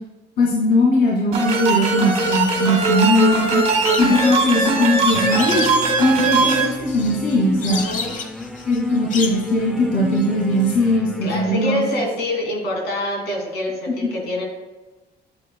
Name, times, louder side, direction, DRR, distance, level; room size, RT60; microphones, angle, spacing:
voice 1, 0.4-5.7 6.0-7.8 8.6-11.8, left 1 dB, 70° left, -4 dB, 2.1 m, -19 dB
sound 1, 1.3-6.7, right 4 dB, 40° right, 1.4 m, -20 dB
sound 2, 2.2-11.0, left 4 dB, 50° left, 1.0 m, -33 dB
voice 2, 3.7-4.1 7.7-8.1 11.2-14.4, left 1 dB, 90° left, -1 dB, 2.6 m, -26 dB
sound 3, 5.1-11.6, equal, ahead, 0.4 m, -32 dB
9.5 x 7.7 x 2.2 m, 1.2 s
cardioid pair, 140°, 17 cm